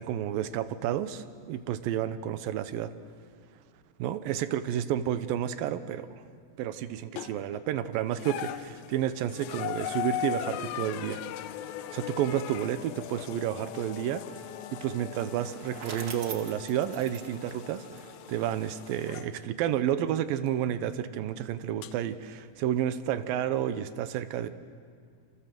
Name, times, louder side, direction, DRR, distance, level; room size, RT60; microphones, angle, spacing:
voice 1, 0.0-2.9 4.0-6.2 6.6-11.2 11.9-14.2 14.7-24.5, right 10 dB, 75° right, 11 dB, 2.2 m, -31 dB
sound 1, 7.2-7.6 8.1-19.3 20.5-20.6 21.8-21.9, left 12 dB, 80° left, 2.1 m, -39 dB
Wind instrument woodwind instrument, 14.2-18.9, left 2 dB, 55° left, 9.6 m, -53 dB
Bicycle, 15.2-18.4, right 4 dB, 45° right, 1.4 m, -44 dB
28.0 x 27.5 x 7.7 m, 2.2 s
omnidirectional pair, 5.2 m